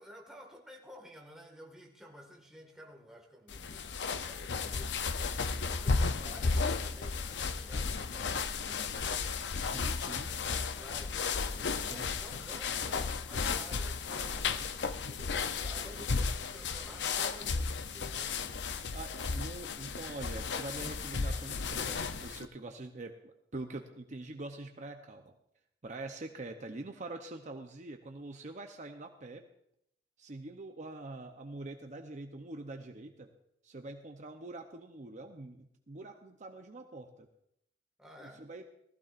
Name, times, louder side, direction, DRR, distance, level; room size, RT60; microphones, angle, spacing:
voice 1, 0.0-9.2 10.4-18.3 38.0-38.4, equal, 5° right, -1 dB, 1.8 m, -53 dB
sound 1, 3.5-22.5, left 4 dB, 75° left, 0.6 m, -34 dB
voice 2, 9.6-10.3 11.9-12.1 15.8-16.0 18.9-25.3 25.8-29.4 30.2-33.3 33.6-37.3 38.2-38.7, right 2 dB, 45° right, 5 dB, 0.8 m, -44 dB
19.5 x 15.0 x 2.6 m, 0.75 s
head